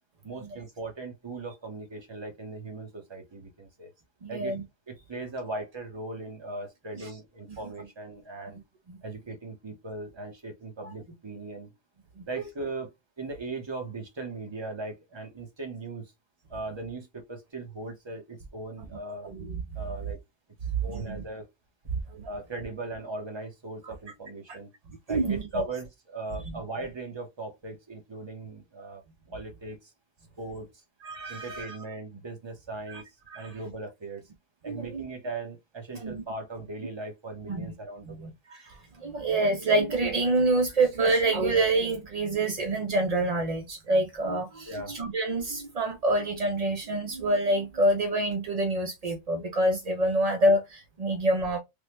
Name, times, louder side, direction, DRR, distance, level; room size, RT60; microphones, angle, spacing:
voice 1, 0.2-3.9 4.3-4.6 4.9-8.6 9.0-11.7 12.3-12.9 13.2-16.1 16.5-19.3 19.7-20.2 20.8-21.5 22.3-24.7 25.1-29.0 29.3-29.9 30.4-30.7 31.3-33.0 33.3-34.2 34.6-38.3 44.6-44.9, right 2 dB, 25° right, 0.7 m, -38 dB
voice 2, 4.2-4.6 7.0-7.1 7.5-7.6 8.9-9.0 12.2-12.3 19.2-19.6 20.9-21.2 22.2-22.3 24.5-24.6 25.1-25.6 26.5-26.6 31.0-31.8 32.9-33.0 33.3-33.6 34.7-35.0 35.9-36.2 37.5-37.7 38.1-51.6, right 2 dB, 60° right, 0.4 m, -27 dB
3.4 x 2.1 x 2.9 m
omnidirectional pair, 1.4 m